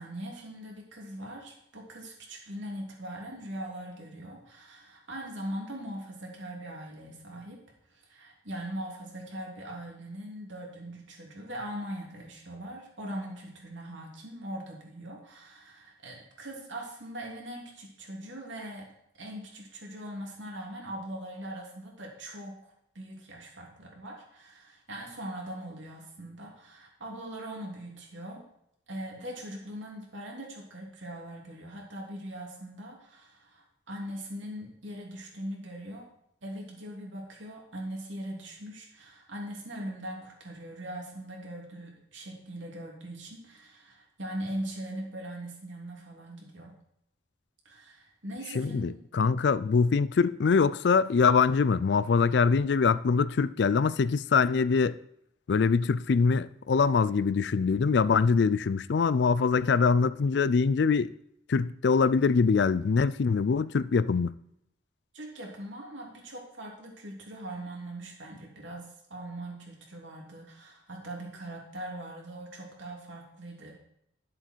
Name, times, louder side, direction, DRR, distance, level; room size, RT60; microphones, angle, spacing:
voice 1, 0.0-7.6 7.9-18.9 19.2-28.4 28.9-36.1 36.4-46.7 47.6-49.0 65.1-73.7, right 1 dB, 85° right, 2.9 m, -41 dB
voice 2, 48.6-55.0 55.5-61.1 61.5-64.3, left 5 dB, 65° left, 0.4 m, -24 dB
10.5 x 7.6 x 4.5 m
head